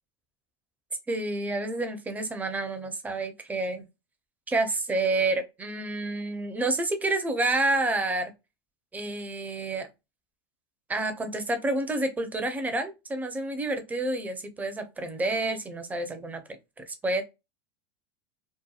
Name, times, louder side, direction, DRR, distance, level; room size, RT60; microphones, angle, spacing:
voice 1, 1.1-3.8 4.5-8.3 8.9-9.9 10.9-16.4 16.9-17.2, right 2 dB, 10° right, 0.5 m, -29 dB
2.8 x 2.2 x 2.3 m
supercardioid pair, 125°, 14 cm